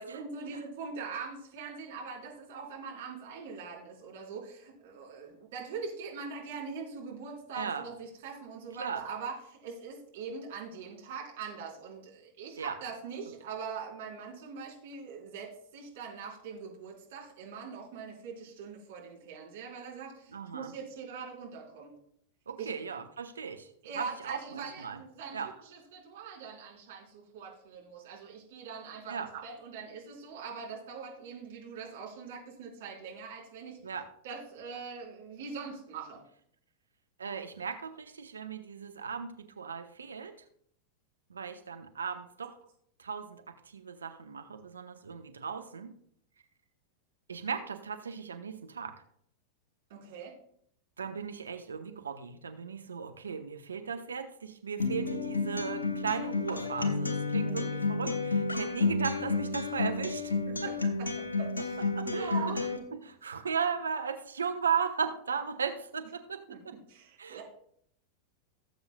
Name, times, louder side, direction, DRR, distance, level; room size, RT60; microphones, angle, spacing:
voice 1, 0.0-22.0 22.6-22.7 23.8-33.8 34.2-36.2 49.9-50.4 57.4-57.7 60.5-62.6 66.5-67.4, right 5 dB, 55° right, -2 dB, 3.7 m, -42 dB
voice 2, 20.3-20.7 22.5-23.7 24.0-25.0 25.3-25.5 29.1-29.3 33.8-34.0 37.2-40.3 41.3-42.5 43.0-46.0 47.3-48.9 51.0-60.3 60.6-60.7 61.9-66.7 67.2-67.4, right 6 dB, 70° right, 7 dB, 0.7 m, -36 dB
Acoustic guitar, 54.8-62.8, left 3 dB, 75° left, 1.3 m, -31 dB
18.5 x 7.9 x 2.2 m, 0.67 s
figure-of-eight pair, 90°, 0 cm